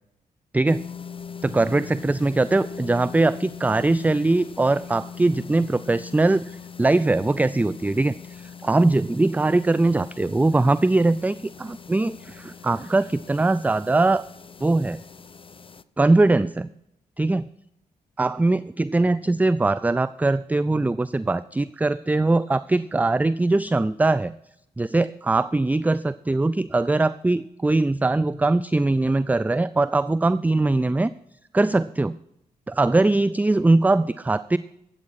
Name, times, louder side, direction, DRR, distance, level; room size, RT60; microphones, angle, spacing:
sound 1, 0.6-15.8, left 6 dB, 35° left, 0.7 m, -41 dB
voice 1, 1.4-6.5 6.8-14.2 14.6-15.0 16.0-16.7 17.2-17.5 18.2-24.3 24.8-31.1 31.5-32.1 32.7-34.6, right 2 dB, 10° right, 17 dB, 0.4 m, -21 dB
13.0 x 8.4 x 6.4 m, 0.81 s
supercardioid pair, 50°, 16 cm